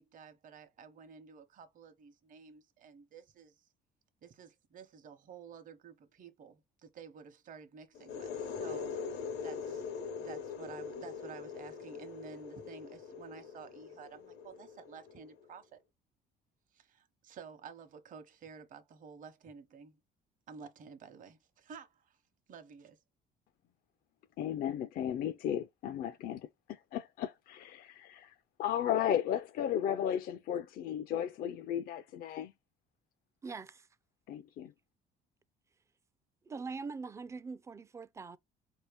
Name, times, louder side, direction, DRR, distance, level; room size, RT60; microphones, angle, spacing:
voice 1, 0.0-3.7 4.2-9.9 10.2-15.8 16.7-20.0 20.5-22.2 22.5-23.0, right 6 dB, 50° right, 0.9 m, -52 dB
sound 1, 7.9-15.5, left 6 dB, 85° left, 0.8 m, -42 dB
voice 2, 24.4-32.5 34.3-34.7, left 10 dB, 60° left, 0.4 m, -35 dB
voice 3, 33.4-33.9 36.5-38.4, right 4 dB, 15° right, 0.3 m, -42 dB
4.4 x 2.8 x 3.4 m
cardioid pair, 110°, 17 cm